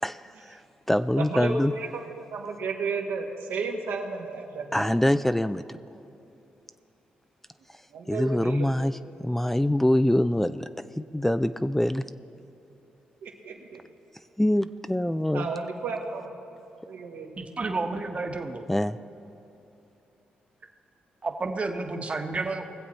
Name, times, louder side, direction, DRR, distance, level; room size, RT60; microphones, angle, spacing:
voice 1, 0.0-0.6 0.9-1.7 4.7-5.8 8.1-10.7 11.0-12.0 14.4-15.5 18.7-19.0, left 1 dB, 5° left, 12 dB, 0.3 m, -24 dB
voice 2, 1.2-4.9 7.9-8.7 13.2-13.8 15.3-16.3 16.9-17.4, right 4 dB, 85° right, 0 dB, 1.5 m, -33 dB
voice 3, 17.4-18.6 21.2-22.7, right 3 dB, 35° right, 4 dB, 1.1 m, -31 dB
21.0 x 7.5 x 4.2 m, 2.9 s
cardioid pair, 65°, 4 cm